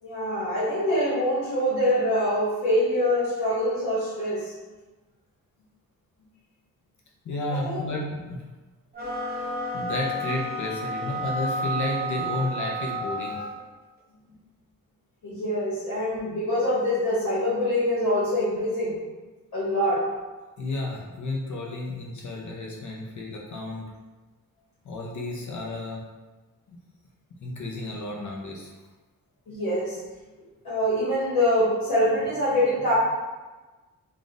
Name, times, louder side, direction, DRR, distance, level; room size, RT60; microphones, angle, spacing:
voice 1, 0.0-4.5 7.5-7.9 15.2-19.0 19.5-20.1 22.7-22.8 29.5-30.0 30.6-32.9, left 1 dB, 80° left, -9 dB, 1.2 m, -24 dB
voice 2, 7.2-8.4 9.7-13.4 20.6-23.9 24.8-26.0 26.7-26.8 27.4-28.7, left 2 dB, 55° left, -2 dB, 0.6 m, -32 dB
sound 1, 8.9-13.6, right 1 dB, 25° right, 0.6 m, -31 dB
3.6 x 2.4 x 2.5 m, 1.2 s
wide cardioid pair, 110°, 35 cm